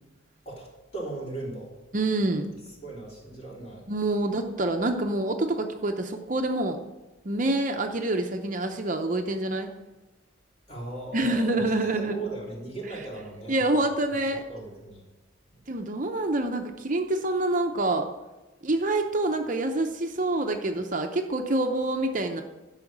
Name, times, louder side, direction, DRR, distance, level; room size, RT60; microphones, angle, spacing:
voice 1, 0.9-1.7 2.8-3.8 10.7-11.7 12.0-13.9 14.5-15.0 15.5-15.6, right 2 dB, 30° left, -4 dB, 3.3 m, -37 dB
voice 2, 1.9-2.5 3.9-6.8 7.2-9.7 11.1-12.2 13.5-14.4 15.7-18.1 18.6-22.4, right 2 dB, 40° right, 5 dB, 0.7 m, -26 dB
12.0 x 5.8 x 7.3 m, 1.1 s
head